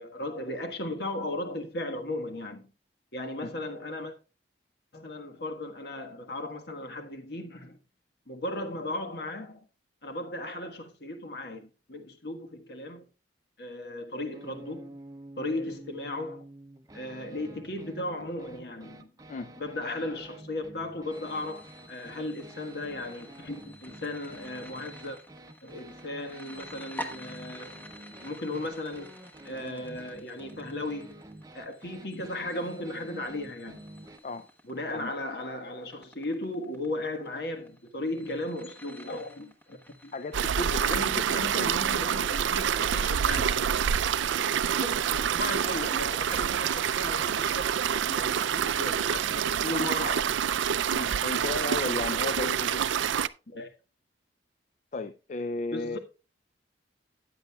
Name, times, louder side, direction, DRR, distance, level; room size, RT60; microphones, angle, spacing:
voice 1, 0.0-2.7 3.1-4.1 4.9-7.8 8.3-9.6 10.0-13.0 13.6-15.0 15.4-16.4 16.9-19.1 19.6-25.2 25.6-27.9 28.2-29.2 29.4-31.2 31.5-33.8 34.7-40.1 40.9-43.7 44.6-50.3 53.5-53.7 55.7-56.0, left 1 dB, 60° left, 1.4 m, -36 dB
sound 1, 14.3-34.2, right 1 dB, 20° right, 0.7 m, -49 dB
sound 2, 21.1-40.9, left 1 dB, 10° left, 1.0 m, -49 dB
voice 2, 40.1-41.8 50.9-53.0 54.9-56.0, left 2 dB, 40° left, 0.4 m, -35 dB
sound 3, 40.3-53.3, right 8 dB, 85° right, 0.4 m, -27 dB
14.0 x 9.2 x 2.3 m
head